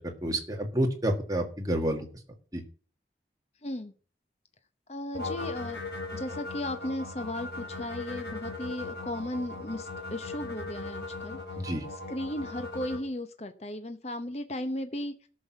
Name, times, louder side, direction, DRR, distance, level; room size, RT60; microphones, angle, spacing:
voice 1, 0.2-2.1 2.5-2.6 11.6-11.8, right 1 dB, 20° right, 3 dB, 1.6 m, -29 dB
voice 2, 3.6-3.9 4.9-5.8 6.1-11.4 12.1-15.1, left 1 dB, 35° left, 9 dB, 0.8 m, -36 dB
sound 1, 5.1-13.0, left 2 dB, 75° left, 3.0 m, -38 dB
13.5 x 6.2 x 5.9 m, 0.42 s
head